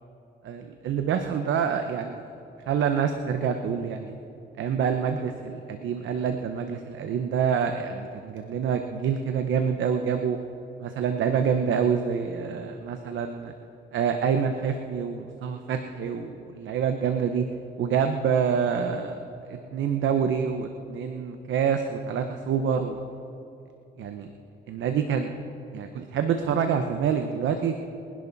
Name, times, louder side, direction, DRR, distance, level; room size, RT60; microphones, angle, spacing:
voice 1, 0.4-2.2 2.7-4.1 4.6-10.4 10.8-13.5 13.9-17.4 17.8-19.2 19.5-23.0 24.0-24.3 24.7-25.3 25.7-27.7, right 7 dB, 75° right, 6 dB, 1.0 m, -27 dB
24.0 x 11.0 x 4.1 m, 2.9 s
cardioid pair, 90°, 20 cm